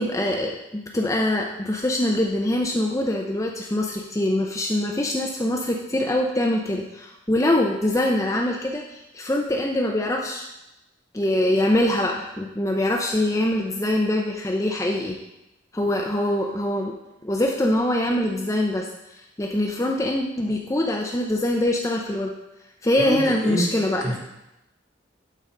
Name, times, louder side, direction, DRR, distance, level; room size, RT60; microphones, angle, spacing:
voice 1, 0.0-10.5 11.1-15.2 15.7-16.9 17.2-18.9 19.4-22.3 22.8-24.2, left 1 dB, 15° left, 0 dB, 0.5 m, -23 dB
voice 2, 23.0-23.7 24.0-24.2, right 1 dB, 40° right, -5 dB, 2.6 m, -26 dB
11.5 x 4.0 x 5.1 m, 0.92 s
head